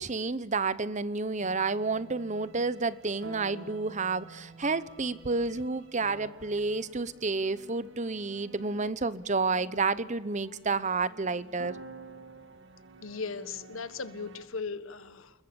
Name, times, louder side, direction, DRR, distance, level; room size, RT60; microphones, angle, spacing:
voice 1, 0.0-11.8, right 4 dB, 35° right, 0.9 m, -30 dB
sound 1, 1.4-14.5, right 3 dB, 60° right, 2.4 m, -50 dB
voice 2, 13.0-15.3, left 4 dB, 75° left, 1.4 m, -37 dB
29.0 x 21.5 x 7.0 m
head